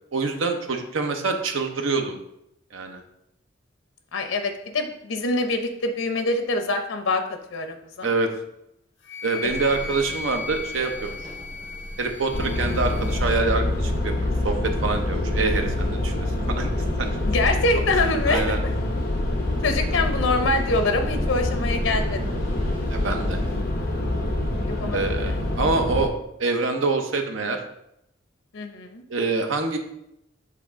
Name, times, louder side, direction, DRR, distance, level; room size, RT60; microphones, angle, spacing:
voice 1, 0.1-2.2 2.7-3.0 8.0-8.3 9.2-11.2 12.0-14.6 14.8-16.3 16.6-16.7 17.0-17.1 18.3-18.6 22.9-23.4 24.9-26.1 26.4-27.6 29.1-29.8, right 3 dB, 85° right, 4 dB, 0.8 m, -25 dB
voice 2, 4.1-7.2 7.5-8.1 9.8-9.9 17.3-18.7 19.6-22.3 24.7-25.4 28.5-29.0, left 2 dB, 90° left, 6 dB, 0.7 m, -25 dB
Wind instrument woodwind instrument, 9.0-13.2, left 4 dB, 70° left, 1.3 m, -37 dB
sound 1, 9.4-23.6, equal, 30° right, 2.1 m, -38 dB
sound 2, 12.3-26.1, left 1 dB, 50° left, 1.0 m, -26 dB
7.6 x 3.6 x 3.6 m, 0.81 s
head